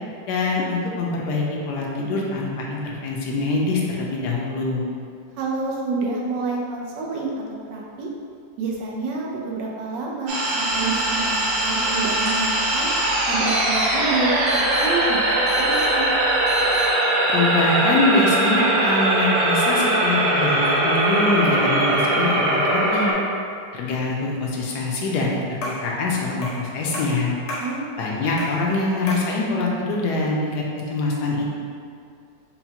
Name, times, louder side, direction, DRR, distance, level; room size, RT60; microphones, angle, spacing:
voice 1, 0.3-4.9 17.3-23.1 23.7-27.3 28.0-30.6 30.9-31.4, left 2 dB, 75° left, -3 dB, 1.1 m, -24 dB
voice 2, 5.4-7.3 7.6-8.1 8.6-12.9 13.3-15.2 15.5-16.1 27.6-28.0, right 3 dB, 80° right, -2 dB, 1.3 m, -28 dB
sound 1, 10.3-23.1, right 1 dB, 60° right, 1.0 m, -21 dB
sound 2, 10.7-16.9, left 1 dB, 35° right, 0.7 m, -34 dB
sound 3, 25.6-25.9 26.4-26.7 26.9-27.7 28.4-28.6 29.1-29.3, left 1 dB, 55° left, 1.0 m, -32 dB
5.6 x 2.2 x 2.8 m, 2.3 s
omnidirectional pair, 1.9 m